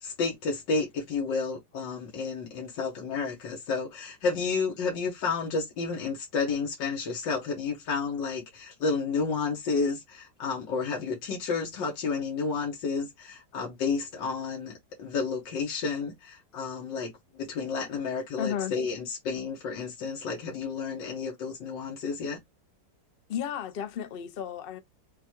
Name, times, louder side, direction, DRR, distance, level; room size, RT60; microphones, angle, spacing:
voice 1, 0.0-22.4, left 4 dB, 85° left, 1.7 m, -31 dB
voice 2, 18.4-18.8 23.3-24.8, left 9 dB, 60° left, 0.5 m, -33 dB
5.7 x 2.3 x 3.0 m
omnidirectional pair, 1.9 m